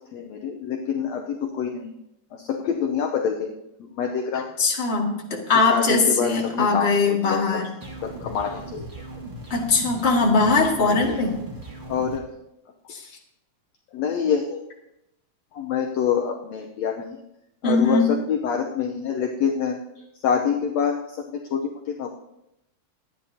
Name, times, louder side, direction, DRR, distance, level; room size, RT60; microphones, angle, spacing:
voice 1, 0.0-1.9 2.3-3.5 3.8-4.5 5.7-7.7 8.0-8.9 11.0-11.2 11.9-12.3 13.9-14.6 15.5-17.1 17.6-19.8 20.2-22.1, left 7 dB, 70° left, 2 dB, 1.7 m, -26 dB
voice 2, 4.6-7.7 9.5-11.4 12.9-13.1 17.6-18.1, left 3 dB, 20° left, -2 dB, 1.9 m, -21 dB
sound 1, 7.8-12.2, right 1 dB, 30° right, 1.7 m, -38 dB
25.5 x 9.9 x 2.8 m, 0.87 s
omnidirectional pair, 3.8 m